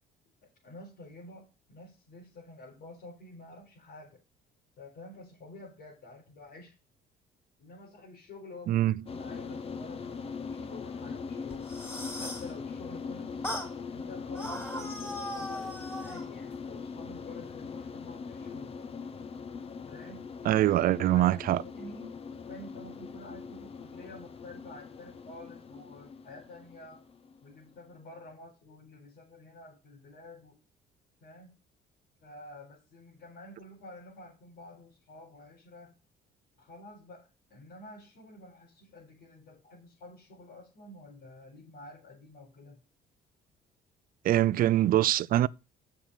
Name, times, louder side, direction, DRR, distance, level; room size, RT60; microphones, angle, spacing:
voice 1, 0.6-4.2 4.8-6.7 7.6-11.7 12.1-13.5 13.9-18.8 19.9-20.2 21.0-27.0 27.4-30.6 31.2-31.5 32.2-35.9 36.6-42.8, left 2 dB, 80° left, 5.0 m, -49 dB
sound 1, 9.1-27.8, left 5 dB, 35° left, 0.9 m, -41 dB
sound 2, 11.5-12.5 13.4-13.7 14.3-16.3, left 1 dB, 10° left, 4.3 m, -38 dB
voice 2, 20.4-21.6 44.2-45.5, right 13 dB, 60° right, 0.5 m, -24 dB
7.2 x 6.7 x 5.6 m
cardioid pair, 110°, 17 cm